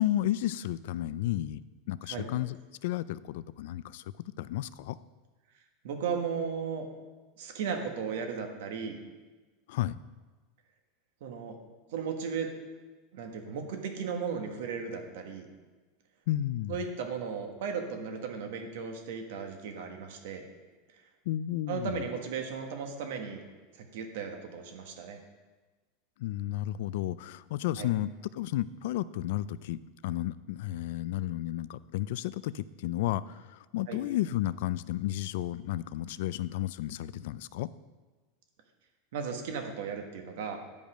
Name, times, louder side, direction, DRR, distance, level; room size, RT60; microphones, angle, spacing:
voice 1, 0.0-1.6 1.9-2.6 2.8-4.0 4.4-5.0 9.7-10.0 16.3-16.8 21.3-22.0 26.2-37.7, left 13 dB, 65° left, 17 dB, 0.3 m, -32 dB
voice 2, 5.8-6.9 7.4-9.0 11.2-11.6 11.9-12.5 13.1-15.5 16.7-20.4 21.7-23.4 23.8-25.2 27.8-27.9 33.9-34.0 39.1-40.6, right 6 dB, 70° right, 4 dB, 1.4 m, -35 dB
10.5 x 5.3 x 5.0 m, 1.3 s
supercardioid pair, 165°, 0 cm